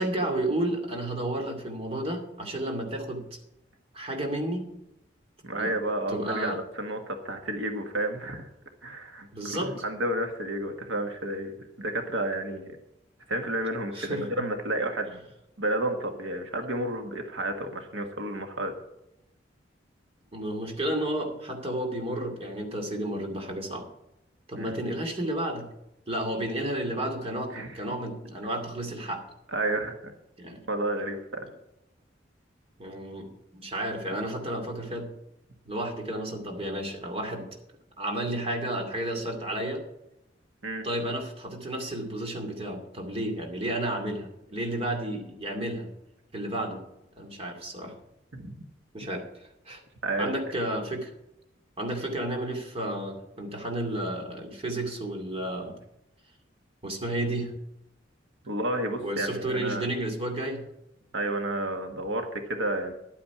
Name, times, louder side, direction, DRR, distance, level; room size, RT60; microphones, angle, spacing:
voice 1, 0.0-3.4 3.9-4.7 5.5-5.7 6.1-6.6 9.3-9.7 13.9-14.5 20.3-23.9 24.5-25.7 26.1-29.2 30.4-30.6 32.8-35.1 35.7-37.5 38.0-39.8 40.8-45.9 46.3-46.8 47.2-47.9 48.9-49.8 50.2-51.1 51.8-55.8 56.8-57.5 59.0-60.7, right 1 dB, 30° right, 3 dB, 2.4 m, -32 dB
voice 2, 5.4-8.5 8.8-11.5 11.8-12.8 13.3-15.2 15.6-18.7 24.5-24.8 27.5-27.7 29.5-29.9 30.7-31.5 40.6-40.8 48.3-48.5 50.0-50.3 58.4-59.9 61.1-62.9, right 1 dB, 85° right, 5 dB, 1.5 m, -31 dB
11.5 x 8.7 x 5.8 m, 0.85 s
head